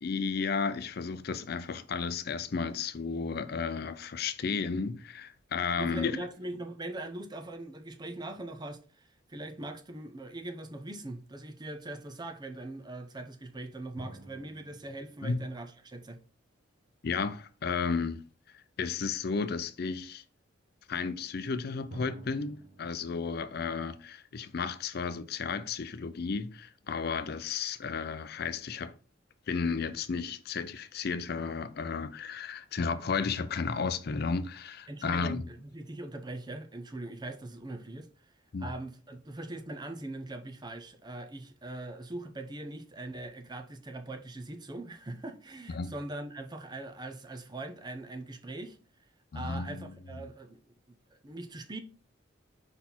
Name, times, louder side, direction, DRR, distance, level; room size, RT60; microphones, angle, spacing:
voice 1, 0.0-6.3 15.2-15.4 17.0-18.2 18.8-20.2 20.9-28.9 29.5-35.5 38.5-38.7 45.7-45.9 49.3-49.9, left 5 dB, 50° left, 0.4 m, -33 dB
voice 2, 5.8-16.2 34.9-38.1 38.6-48.8 49.3-50.6 51.1-51.8, right 2 dB, 20° right, 0.6 m, -41 dB
sound 1, 14.0-16.7 21.9-24.9, right 1 dB, 70° right, 2.2 m, -52 dB
5.4 x 4.2 x 4.3 m
head